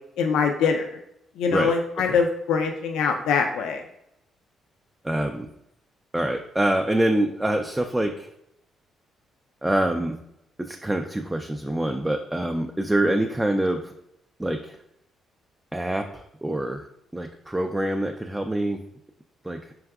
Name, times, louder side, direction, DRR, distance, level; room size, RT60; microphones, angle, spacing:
voice 1, 0.2-0.9 1.4-3.8, left 5 dB, 90° left, 4 dB, 0.3 m, -23 dB
voice 2, 5.0-5.5 6.1-8.3 9.6-10.2 10.6-13.9 14.4-14.8 15.7-18.8 19.4-19.6, right 1 dB, 10° right, 4 dB, 0.3 m, -25 dB
4.6 x 3.4 x 2.3 m, 0.80 s
cardioid pair, 90°, 0 cm